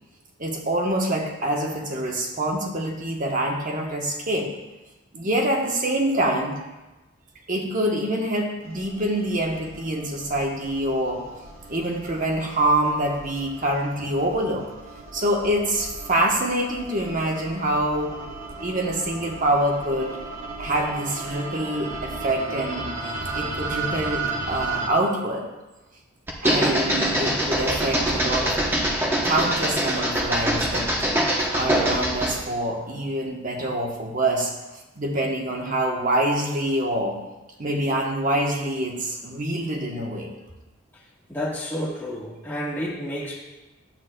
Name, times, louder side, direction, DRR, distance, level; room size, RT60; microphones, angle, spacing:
voice 1, 0.4-4.5 5.1-6.5 7.5-11.2 11.7-14.7 15.1-18.1 18.6-20.2 20.6-22.9 23.3-25.5 26.4-28.6 29.2-30.9 31.5-34.5 35.0-37.2 37.6-40.3, right 1 dB, 40° right, 1 dB, 1.0 m, -25 dB
sound 1, 8.6-24.9, right 3 dB, 70° right, 1.4 m, -35 dB
sound 2, 26.3-32.4, right 1 dB, 10° right, 0.8 m, -23 dB
voice 2, 41.3-43.4, equal, 10° left, -5 dB, 1.2 m, -30 dB
10.0 x 8.0 x 2.2 m, 1.1 s
head